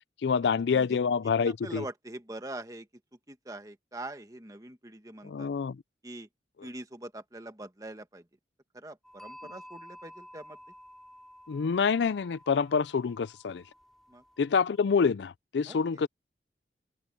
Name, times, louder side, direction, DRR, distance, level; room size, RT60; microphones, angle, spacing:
voice 1, 0.2-1.8 5.2-5.8 11.5-13.6 14.4-16.1, left 5 dB, 75° left, 0.4 m, -27 dB
voice 2, 1.4-2.9 3.3-5.5 6.0-6.3 6.6-8.3 8.7-10.6 14.1-14.2 15.6-16.1, right 1 dB, 20° right, 1.4 m, -43 dB
sound 1, 9.0-14.8, equal, ahead, 4.8 m, -52 dB
open air
head